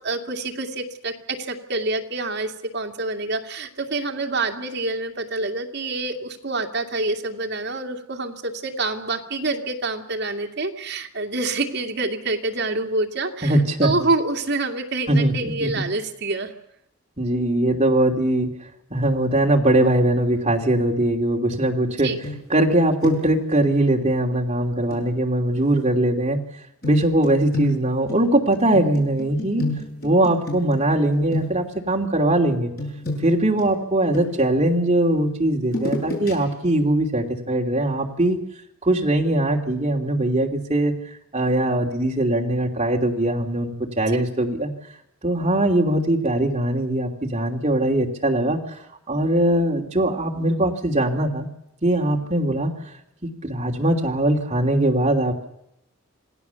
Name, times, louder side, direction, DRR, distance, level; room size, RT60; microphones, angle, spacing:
voice 1, 0.0-16.5 22.0-22.2 44.1-44.2, right 2 dB, 50° right, 3 dB, 2.4 m, -27 dB
voice 2, 13.4-13.9 15.1-15.9 17.2-18.5 18.9-22.1 22.5-26.4 26.8-29.7 30.0-32.7 33.2-38.4 38.9-40.9 41.3-44.7 45.2-48.6 49.1-51.5 51.8-52.7 53.4-55.5, right 1 dB, 30° right, 1 dB, 2.9 m, -21 dB
sound 1, 22.2-22.7 23.0-23.5 24.9-25.1 26.8-31.0 31.3-31.8 32.8-34.6 35.6-36.3 36.7-36.8, left 1 dB, 45° left, 7.6 m, -30 dB
27.5 x 17.5 x 7.1 m, 0.80 s
head